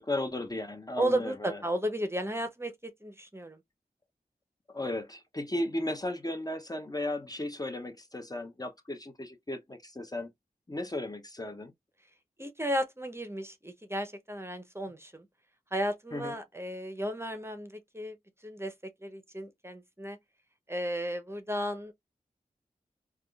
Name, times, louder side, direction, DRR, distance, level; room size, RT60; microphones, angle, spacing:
voice 1, 0.0-1.6 4.7-10.3 10.7-11.7 16.1-16.4, left 1 dB, 25° left, 0.6 m, -35 dB
voice 2, 1.0-2.7 3.0-3.6 12.4-15.3 15.7-18.2 18.4-20.2 20.7-21.9, right 1 dB, 15° right, 0.7 m, -34 dB
3.5 x 2.3 x 2.3 m
cardioid pair, 40°, 16 cm